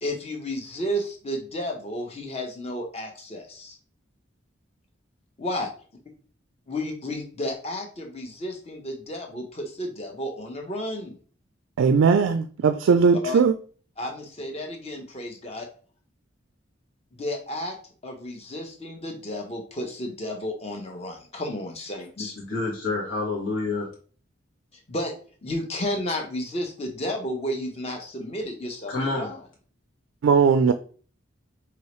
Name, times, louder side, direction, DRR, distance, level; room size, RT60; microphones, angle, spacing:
voice 1, 0.0-3.8 5.4-5.7 6.7-11.2 13.2-13.4 14.0-15.7 17.1-17.8 18.0-22.3 24.7-25.1 25.4-29.4, left 1 dB, 30° left, 2 dB, 0.9 m, -32 dB
voice 2, 11.8-13.5 30.2-30.7, right 5 dB, 90° right, 9 dB, 0.3 m, -19 dB
voice 3, 22.2-23.9 28.9-29.3, left 3 dB, 85° left, -3 dB, 1.4 m, -28 dB
4.7 x 2.9 x 3.1 m, 0.41 s
head